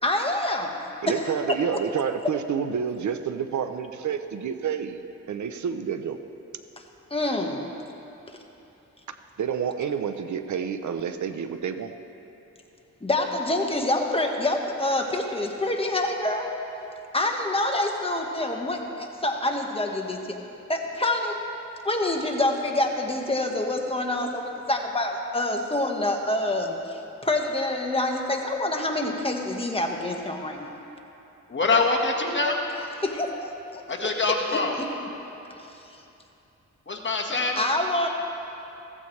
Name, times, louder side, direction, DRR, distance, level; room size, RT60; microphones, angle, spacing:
voice 1, 0.0-0.8 1.1-1.6 7.1-7.7 13.0-16.5 17.1-20.4 20.7-21.4 21.8-30.7 33.0-34.9 37.6-38.1, left 1 dB, 20° left, 2 dB, 1.5 m, -27 dB
voice 2, 1.0-5.0 5.3-6.2 9.4-11.9, right 7 dB, 70° right, 9 dB, 0.7 m, -29 dB
voice 3, 31.5-32.6 33.9-34.8 36.9-37.6, left 3 dB, 40° left, 0 dB, 1.6 m, -24 dB
15.5 x 15.0 x 3.3 m, 2.9 s
cardioid pair, 70°, 30 cm